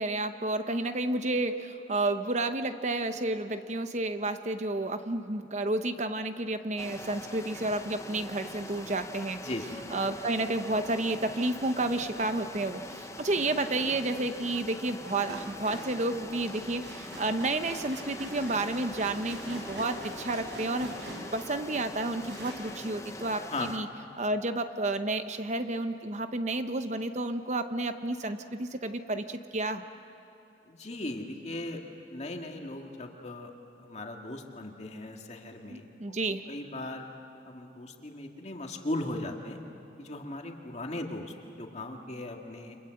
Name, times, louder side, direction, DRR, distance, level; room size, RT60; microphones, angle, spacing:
voice 1, 0.0-9.4 9.9-23.9 24.2-29.8 35.7-36.4, right 2 dB, 40° right, 8 dB, 0.9 m, -31 dB
sound 1, 6.8-23.8, left 2 dB, 15° left, 0.9 m, -43 dB
voice 2, 9.4-9.8 23.5-23.7 30.7-31.8 32.1-33.5 33.8-35.9 36.5-37.1 37.4-39.6 40.0-42.8, left 2 dB, 40° left, 2 dB, 2.2 m, -38 dB
sound 2, 15.3-21.8 22.2-22.5, right 1 dB, 75° right, 7.0 m, -44 dB
29.5 x 26.0 x 7.8 m, 2.7 s
head